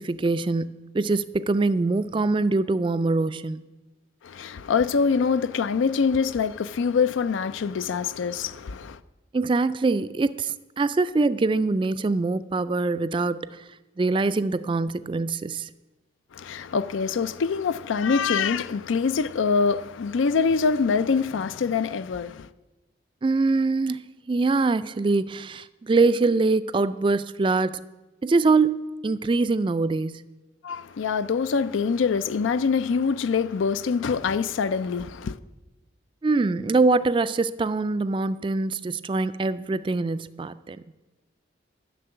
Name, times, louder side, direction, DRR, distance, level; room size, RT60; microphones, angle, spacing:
voice 1, 0.0-3.7 9.3-13.6 14.0-15.7 23.2-27.8 28.2-30.2 36.2-40.8, right 3 dB, 25° right, 0.3 m, -24 dB
voice 2, 4.2-9.0 16.3-22.5 30.6-35.4, left 5 dB, 80° left, 0.4 m, -24 dB
10.0 x 6.8 x 8.9 m
head